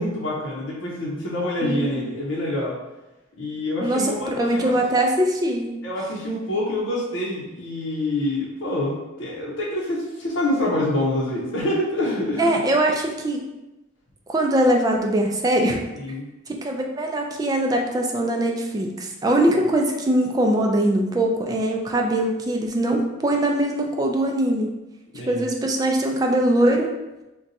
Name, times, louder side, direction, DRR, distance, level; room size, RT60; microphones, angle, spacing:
voice 1, 0.0-2.7 3.4-4.7 5.8-12.6 16.0-16.3 25.1-25.5, left 1 dB, 85° left, -5 dB, 0.7 m, -26 dB
voice 2, 1.6-2.0 3.8-5.7 12.4-13.4 14.3-15.8 16.5-24.7 25.3-26.9, right 1 dB, 20° right, 1 dB, 0.3 m, -22 dB
2.5 x 2.2 x 4.0 m, 1.0 s
head